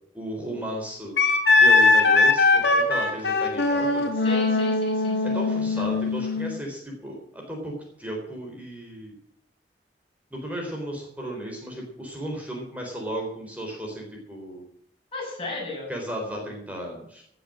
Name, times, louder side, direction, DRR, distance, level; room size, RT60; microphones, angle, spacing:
voice 1, 0.1-1.2 1.6-4.1 5.2-9.2 10.3-14.6 15.9-17.2, right 1 dB, 10° right, -1 dB, 4.0 m, -34 dB
Wind instrument woodwind instrument, 1.2-6.5, left 3 dB, 70° left, 2.7 m, -20 dB
voice 2, 4.2-5.4 5.7-5.9 15.1-15.9, left 2 dB, 30° left, -1 dB, 6.9 m, -35 dB
18.0 x 7.9 x 7.6 m, 0.69 s
head